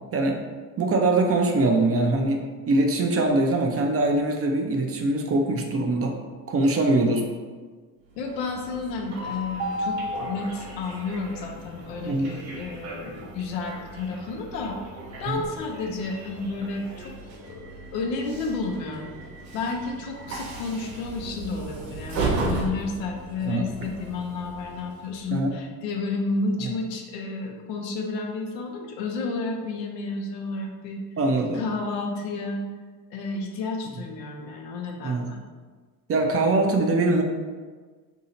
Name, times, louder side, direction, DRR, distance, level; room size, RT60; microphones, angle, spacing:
voice 1, 0.8-6.2 6.5-7.2 12.1-12.3 15.3-15.4 23.4-23.6 25.3-25.6 31.2-31.6 35.0-35.3 36.1-37.2, right 2 dB, 30° right, 2 dB, 0.5 m, -22 dB
Train, 8.1-25.4, right 2 dB, 80° right, 1.0 m, -35 dB
voice 2, 8.2-14.8 15.2-17.1 17.4-19.1 19.5-31.0 31.5-32.6 33.1-35.4, left 3 dB, 80° left, 2 dB, 0.7 m, -31 dB
2.8 x 2.7 x 4.1 m, 1.4 s
hypercardioid pair, 60°, 49 cm